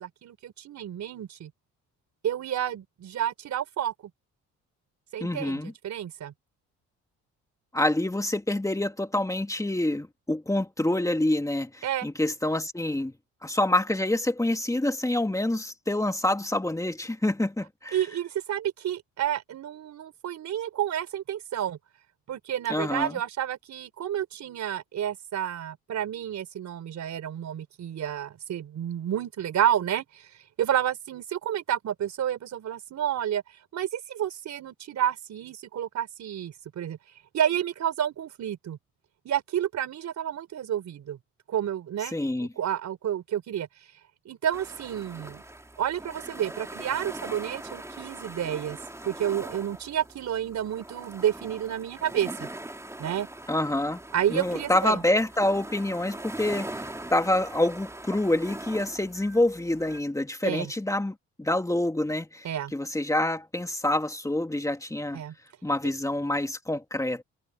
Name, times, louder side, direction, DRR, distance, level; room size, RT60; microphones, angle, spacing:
voice 1, 0.0-1.5 2.2-3.9 5.1-6.3 11.8-12.1 17.9-21.8 22.3-30.3 30.6-33.4 33.7-37.0 37.3-38.8 39.2-41.2 41.5-42.2 42.6-43.7 44.2-45.4 45.8-48.8 49.0-52.5 53.0-53.3 54.1-55.0 60.4-60.7 62.4-62.7 65.1-65.3, right 10 dB, 65° right, 4.4 m, -30 dB
voice 2, 5.2-5.7 7.7-13.1 13.4-18.0 22.7-23.2 42.1-42.5 53.5-54.0 54.3-56.8 57.1-65.2 65.6-67.2, left 1 dB, 10° left, 2.7 m, -27 dB
sound 1, 44.5-60.0, right 1 dB, 10° right, 3.3 m, -41 dB
cardioid pair, 90°, 30 cm